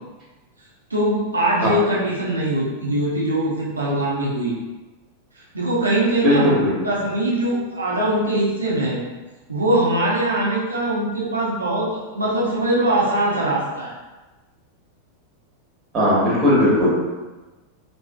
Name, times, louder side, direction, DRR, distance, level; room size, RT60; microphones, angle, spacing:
voice 1, 0.9-4.5 5.4-6.5 6.8-9.0 9.5-13.9, right 1 dB, 80° right, -5 dB, 0.6 m, -22 dB
voice 2, 6.2-6.7 15.9-16.9, left 1 dB, 25° right, -7 dB, 0.9 m, -17 dB
2.5 x 2.3 x 2.2 m, 1.2 s
figure-of-eight pair, 90°, 0 cm